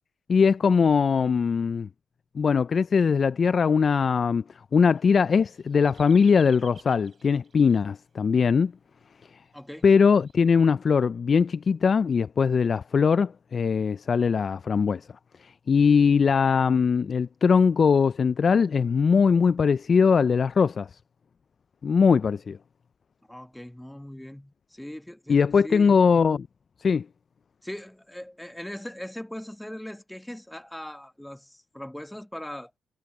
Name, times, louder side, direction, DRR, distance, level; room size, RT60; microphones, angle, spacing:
voice 1, 0.3-1.9 2.4-4.4 4.7-8.7 9.8-15.1 15.4-21.0 21.8-22.6 25.3-26.5 26.8-27.1, left 6 dB, 40° left, 0.3 m, -21 dB
sound 1, 5.0-7.8 9.0-9.1 9.8-10.3, right 5 dB, 40° right, 3.6 m, -54 dB
voice 2, 9.5-9.9 23.3-25.9 27.6-32.7, left 1 dB, 5° left, 1.4 m, -40 dB
cardioid pair, 90°, 0 cm